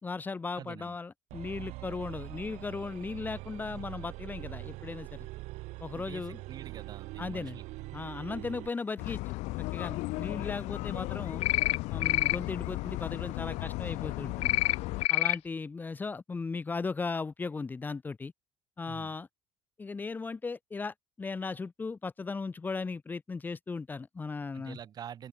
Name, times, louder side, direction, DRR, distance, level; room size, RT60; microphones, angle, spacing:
voice 1, 0.0-5.2 5.8-6.4 7.2-7.6 7.9-9.3 9.7-11.4 11.9-14.6 15.1-18.3 18.8-19.3 19.8-24.8, left 4 dB, 15° left, 3.5 m, -37 dB
voice 2, 0.5-1.0 5.9-7.6 13.5-13.7 18.9-19.1 24.5-25.3, right 9 dB, 35° right, 5.2 m, -46 dB
sound 1, 1.3-8.8, right 20 dB, 75° right, 7.1 m, -43 dB
sound 2, 9.0-15.1, left 21 dB, 75° left, 0.9 m, -35 dB
sound 3, 11.4-11.8 12.0-12.4 14.4-14.8 15.0-15.4, left 17 dB, 60° left, 1.2 m, -26 dB
open air
cardioid pair, 175°, 12 cm